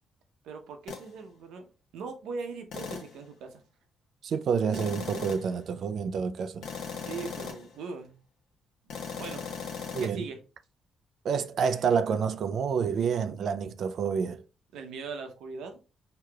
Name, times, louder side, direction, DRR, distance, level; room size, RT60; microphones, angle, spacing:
voice 1, 0.4-1.7 1.9-3.6 7.0-8.2 9.1-9.6 10.0-10.4 14.7-15.8, right 4 dB, 85° right, 0.8 m, -40 dB
sound 1, 0.9-1.1 2.7-3.2 4.7-5.6 6.6-7.7 8.9-10.1, left 6 dB, 75° left, 1.1 m, -38 dB
voice 2, 4.2-6.6 9.9-10.2 11.2-14.4, right 6 dB, 65° right, 0.4 m, -28 dB
4.7 x 2.9 x 2.3 m
cardioid pair, 90°, 0 cm